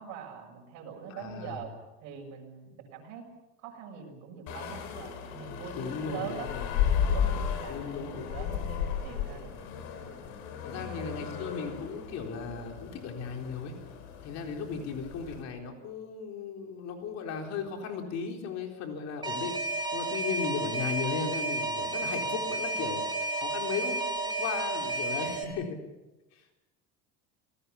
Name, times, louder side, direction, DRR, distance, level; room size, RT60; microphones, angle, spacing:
voice 1, 0.0-1.7 2.0-3.2 3.6-6.5 7.1-10.2 10.7-11.3, right 7 dB, 60° right, -1 dB, 7.1 m, -43 dB
voice 2, 1.1-1.6 5.7-6.6 7.7-8.3 10.6-13.7 14.2-19.6 19.9-23.0 23.4-25.8 26.3-26.4, left 6 dB, 55° left, 3 dB, 4.1 m, -36 dB
sound 1, 4.5-15.4, left 8 dB, 85° left, 4.0 m, -34 dB
Alarm, 19.2-25.4, right 2 dB, 15° right, 3.1 m, -32 dB
28.0 x 18.5 x 7.1 m, 1.0 s
cardioid pair, 135°, 32 cm